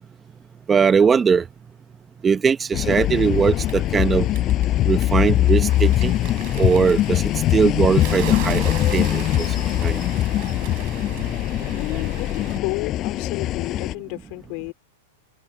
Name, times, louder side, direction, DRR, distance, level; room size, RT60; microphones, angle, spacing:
voice 1, 0.7-1.4 2.2-4.3 4.9-6.1 6.6-9.5 9.8-10.0, right 6 dB, 15° right, 0.8 m, -20 dB
sound 1, 2.7-13.9, left 14 dB, 30° left, 4.6 m, -22 dB
Bird, 3.2-12.6, right 23 dB, 50° right, 5.0 m, -38 dB
voice 2, 11.7-14.7, left 30 dB, 45° left, 3.3 m, -32 dB
open air
supercardioid pair, 150°, 0 cm